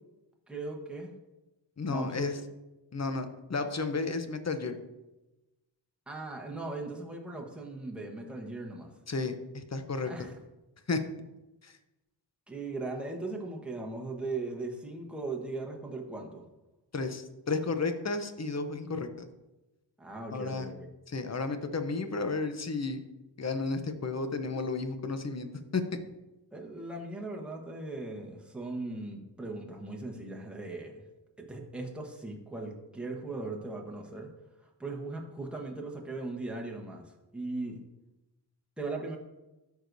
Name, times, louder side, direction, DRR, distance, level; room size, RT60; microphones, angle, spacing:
voice 1, 0.5-1.1 1.9-2.3 6.1-8.9 10.0-10.3 12.5-16.4 20.0-20.7 26.5-31.0 31.4-34.3 34.8-37.8 38.8-39.2, right 2 dB, ahead, -1 dB, 1.1 m, -38 dB
voice 2, 1.8-2.4 2.9-4.8 9.1-10.1 10.9-11.0 11.6-11.7 16.9-19.3 20.3-20.7 21.1-23.0 23.4-25.8, left 3 dB, 35° left, 8 dB, 0.7 m, -32 dB
12.5 x 4.7 x 2.6 m, 1.0 s
wide cardioid pair, 90°, 45 cm